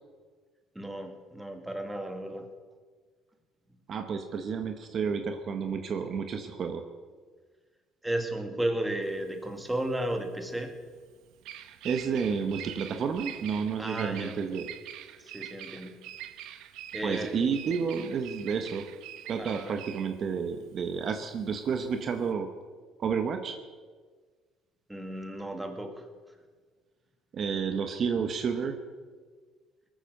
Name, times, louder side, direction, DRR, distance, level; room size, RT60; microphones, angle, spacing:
voice 1, 0.8-2.5 8.0-10.7 13.8-14.3 15.2-16.0 16.9-17.4 19.4-19.8 24.9-26.0, right 1 dB, 10° right, 5 dB, 2.2 m, -34 dB
voice 2, 3.9-6.8 11.8-14.7 17.0-18.9 19.3-22.5 23.0-23.6 27.3-28.8, right 6 dB, 50° right, 7 dB, 1.2 m, -30 dB
Bird vocalization bird call bird song, 9.0-22.3, right 12 dB, 75° right, 0.9 m, -44 dB
20.0 x 9.0 x 6.7 m, 1.5 s
supercardioid pair, 95°, 0 cm